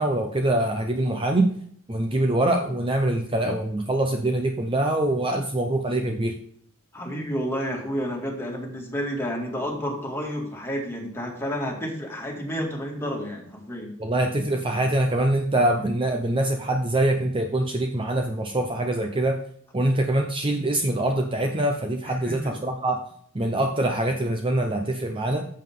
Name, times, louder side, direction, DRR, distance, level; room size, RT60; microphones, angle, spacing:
voice 1, 0.0-1.5 1.9-6.3 14.0-19.4 19.7-23.0 23.3-25.5, right 1 dB, 25° right, 4 dB, 0.8 m, -24 dB
voice 2, 6.9-13.9 22.0-22.6, equal, 10° left, -1 dB, 2.4 m, -30 dB
14.0 x 7.6 x 3.8 m, 0.62 s
head